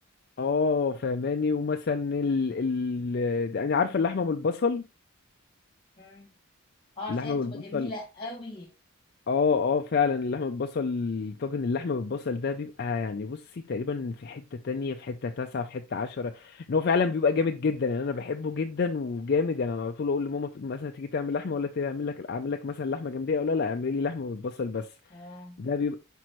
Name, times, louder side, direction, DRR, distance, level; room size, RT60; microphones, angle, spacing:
voice 1, 0.4-4.9 7.1-7.9 9.3-24.9 25.6-26.0, left 4 dB, 45° left, 0.4 m, -28 dB
voice 2, 6.0-6.3 7.0-8.7 25.1-25.6, left 2 dB, 20° left, 1.8 m, -40 dB
6.0 x 5.1 x 3.1 m
head